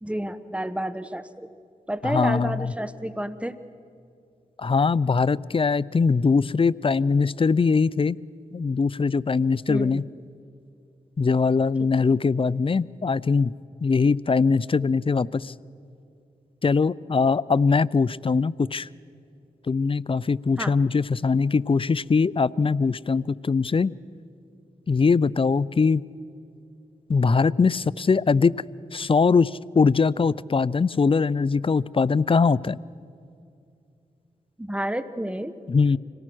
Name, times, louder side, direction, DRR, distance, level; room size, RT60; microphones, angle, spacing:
voice 1, 0.0-1.3 1.9-3.5 9.7-10.0 20.6-20.7 34.6-35.5, right 1 dB, 10° right, 12 dB, 1.1 m, -30 dB
voice 2, 2.0-2.7 4.6-8.2 8.5-10.0 11.2-13.5 13.8-15.5 16.6-18.9 19.7-23.9 24.9-26.0 27.1-28.5 28.9-32.8 35.7-36.0, left 4 dB, 35° left, 22 dB, 0.5 m, -21 dB
25.5 x 18.0 x 6.2 m, 2.5 s
cardioid pair, 45°, 15 cm